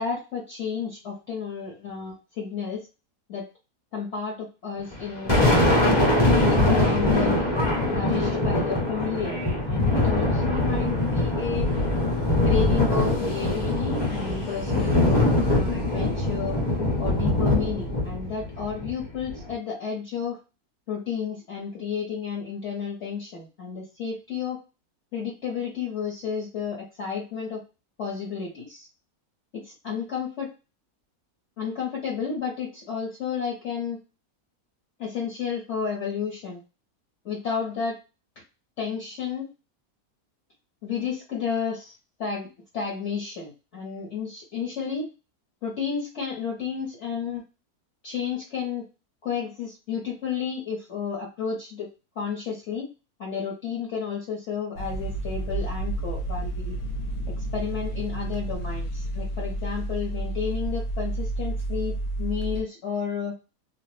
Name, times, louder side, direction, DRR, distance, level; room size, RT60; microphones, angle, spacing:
voice 1, 0.0-2.9 3.3-3.5 3.9-6.1 6.5-7.4 7.9-9.4 9.7-11.7 12.4-16.6 17.0-20.4 20.9-24.6 25.1-27.6 28.0-28.9 29.5-30.5 31.6-34.0 35.0-36.6 37.2-38.0 38.8-39.5 40.8-41.9 42.2-45.1 45.6-47.4 48.0-48.8 49.2-51.9 52.2-52.9 53.2-56.8 57.4-63.4, left 6 dB, 55° left, -3 dB, 1.0 m, -31 dB
Thunder, 4.9-19.5, left 1 dB, 25° left, 0.7 m, -23 dB
sound 1, 54.8-62.6, right 1 dB, 80° left, 1.1 m, -30 dB
2.6 x 2.0 x 3.1 m, 0.29 s
omnidirectional pair, 1.6 m